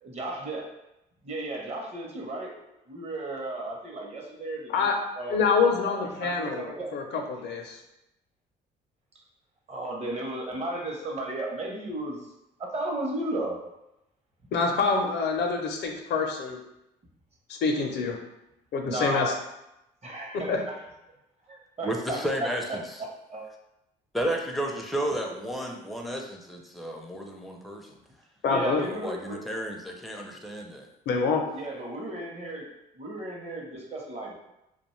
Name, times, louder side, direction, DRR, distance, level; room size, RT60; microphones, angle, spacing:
voice 1, 0.0-0.7 1.2-2.5 2.9-4.9 5.2-5.4 5.8-6.9 9.7-12.3 12.6-13.6 18.9-19.4 20.0-20.8 21.8-23.4 28.5-29.4 31.5-32.7 33.0-34.3, right 1 dB, 35° right, 0 dB, 0.7 m, -34 dB
voice 2, 5.3-7.8 14.5-16.6 17.6-18.2 18.7-19.3 20.5-20.6 28.4-28.8 31.1-31.4, left 4 dB, 65° left, 3 dB, 0.5 m, -26 dB
voice 3, 21.8-23.0 24.1-28.0 28.8-30.9, right 1 dB, ahead, 1 dB, 0.4 m, -32 dB
2.4 x 2.2 x 3.0 m, 0.88 s
cardioid pair, 85°, 19 cm